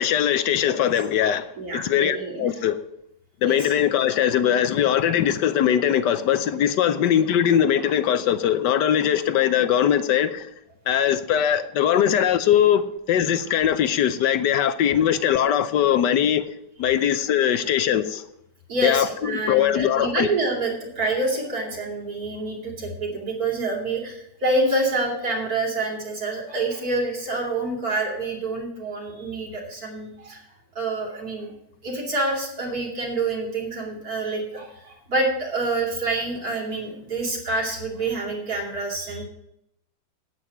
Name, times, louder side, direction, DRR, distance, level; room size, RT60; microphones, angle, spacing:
voice 1, 0.0-1.5 1.7-2.8 3.4-10.5 10.9-16.4 16.8-18.2 18.8-20.3, left 10 dB, 70° left, 1.2 m, -21 dB
voice 2, 1.6-2.5 3.4-3.7 18.7-30.4 30.7-31.5 31.8-39.2, right 2 dB, 45° right, 3.0 m, -27 dB
8.9 x 8.7 x 5.9 m
omnidirectional pair, 2.2 m